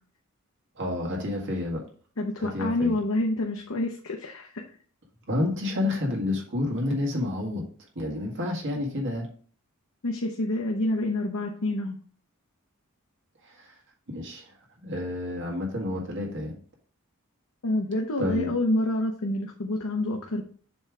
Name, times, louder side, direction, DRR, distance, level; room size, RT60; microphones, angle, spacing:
voice 1, 0.8-1.8 2.4-3.0 5.3-7.6 8.0-9.3 13.4-13.7 14.1-14.5 14.8-16.6 18.2-18.5, left 2 dB, 60° right, -1 dB, 1.9 m, -29 dB
voice 2, 2.2-4.6 10.0-11.9 17.6-20.4, left 1 dB, 75° left, 2 dB, 0.8 m, -27 dB
7.1 x 3.3 x 4.9 m, 0.43 s
head